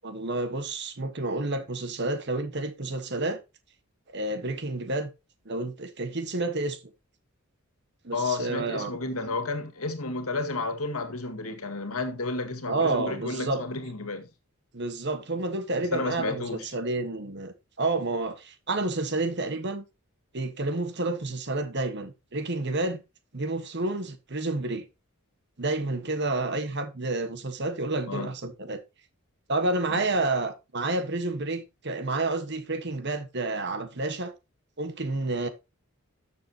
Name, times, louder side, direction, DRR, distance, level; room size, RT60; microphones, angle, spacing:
voice 1, 0.0-3.4 4.1-5.1 5.4-6.8 8.0-8.9 12.7-13.6 14.7-19.8 20.3-23.0 23.3-24.9 25.6-28.8 29.5-34.3 34.8-35.5, right 2 dB, 50° right, 1.4 m, -30 dB
voice 2, 8.1-14.3 15.9-16.7 28.1-28.3 29.9-30.0, left 3 dB, 75° left, 1.9 m, -32 dB
12.0 x 6.9 x 2.9 m
head